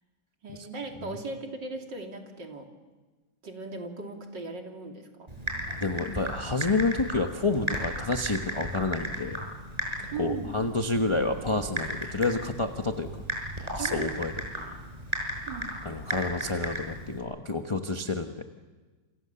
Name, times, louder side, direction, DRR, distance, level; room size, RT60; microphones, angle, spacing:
voice 1, 0.4-2.7 3.4-5.4 10.1-10.5 13.8-14.2 15.5-15.7, right 4 dB, 65° right, 2 dB, 3.6 m, -38 dB
Typing, 5.3-17.2, equal, 20° right, 6.3 m, -35 dB
voice 2, 5.7-9.4 10.2-13.1 13.7-14.3 15.8-18.4, left 3 dB, 20° left, 5 dB, 1.0 m, -29 dB
29.0 x 27.5 x 7.0 m, 1.3 s
omnidirectional pair, 2.0 m